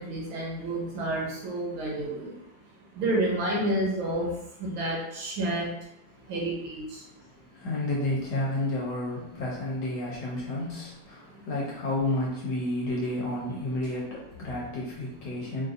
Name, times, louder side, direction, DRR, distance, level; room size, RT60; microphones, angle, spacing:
voice 1, 0.0-2.3 3.0-4.3 4.6-5.7 6.3-7.0, right 1 dB, 70° right, -3 dB, 1.7 m, -29 dB
voice 2, 7.3-15.7, left 1 dB, 65° left, -4 dB, 1.2 m, -31 dB
4.0 x 2.5 x 2.5 m, 0.83 s
omnidirectional pair, 2.4 m